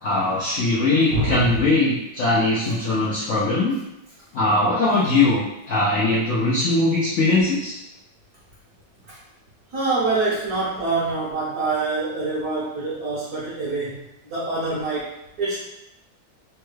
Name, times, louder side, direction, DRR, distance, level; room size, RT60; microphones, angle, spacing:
voice 1, 0.0-3.7 4.3-7.8, left 2 dB, 90° left, -8 dB, 0.6 m, -20 dB
voice 2, 1.1-1.5 2.7-2.8 9.1-9.2 9.7-14.0 14.3-15.6, right 3 dB, 60° right, -7 dB, 1.0 m, -25 dB
3.4 x 2.2 x 3.1 m, 0.87 s
omnidirectional pair, 2.1 m